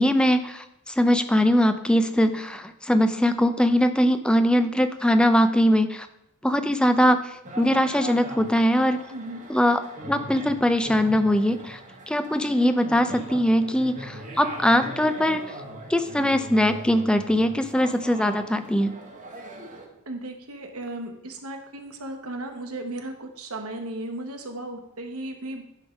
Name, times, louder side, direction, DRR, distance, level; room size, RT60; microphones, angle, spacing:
voice 1, 0.0-6.1 6.4-9.0 9.5-9.8 10.1-11.8 12.1-15.4 15.9-18.9, equal, 5° left, 9 dB, 0.4 m, -21 dB
sound 1, 7.4-19.9, right 1 dB, 35° right, 1.1 m, -40 dB
voice 2, 9.1-9.4 20.1-25.7, right 1 dB, 70° right, 4 dB, 1.1 m, -35 dB
10.5 x 3.5 x 5.1 m, 0.85 s
head